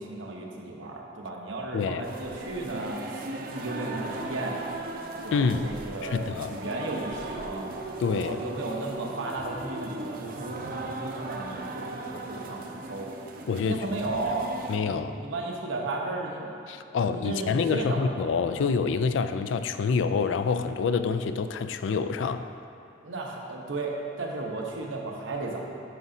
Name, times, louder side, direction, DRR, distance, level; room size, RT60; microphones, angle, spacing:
voice 1, 0.0-4.6 5.2-7.7 8.2-13.1 13.6-14.5 14.8-16.6 17.0-18.2 23.0-25.6, right 2 dB, 85° right, -1 dB, 1.0 m, -34 dB
voice 2, 1.7-2.1 5.3-5.7 6.0-6.5 8.0-8.4 13.5-13.9 14.7-15.1 16.7-22.5, left 5 dB, 75° left, 10 dB, 0.3 m, -27 dB
sound 1, 2.0-14.8, right 2 dB, 45° right, 0.5 m, -38 dB
9.2 x 6.0 x 2.7 m, 2.5 s
head